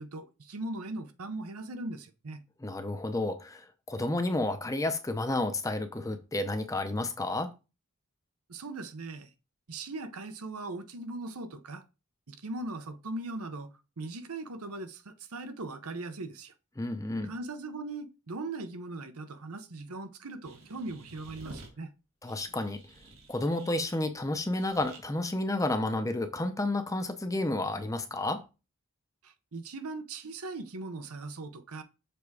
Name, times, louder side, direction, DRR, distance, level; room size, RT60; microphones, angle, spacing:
voice 1, 0.0-2.4 8.5-9.3 9.7-11.8 12.3-16.5 17.2-21.9 29.2-31.8, right 2 dB, 85° right, 0.8 m, -39 dB
voice 2, 2.6-7.5 16.8-17.3 22.2-22.8 23.3-28.4, left 2 dB, 15° left, 0.6 m, -31 dB
sound 1, 20.4-21.7 22.3-24.0 24.5-25.0, right 2 dB, 65° right, 2.0 m, -51 dB
6.9 x 3.5 x 4.8 m
head